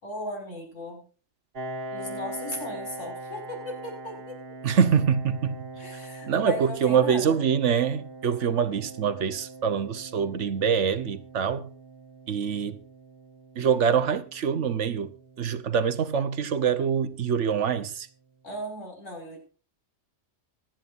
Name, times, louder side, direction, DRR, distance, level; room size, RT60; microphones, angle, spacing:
voice 1, 0.0-1.0 1.9-4.4 5.8-7.4 18.4-19.4, left 1 dB, 80° left, 6.3 m, -36 dB
Piano, 1.5-16.9, right 2 dB, 55° right, 1.4 m, -42 dB
voice 2, 4.6-5.6 6.3-11.7 12.3-12.8 13.6-15.1 15.4-18.1, right 7 dB, 70° right, 1.3 m, -25 dB
25.5 x 9.0 x 2.6 m
omnidirectional pair, 1.3 m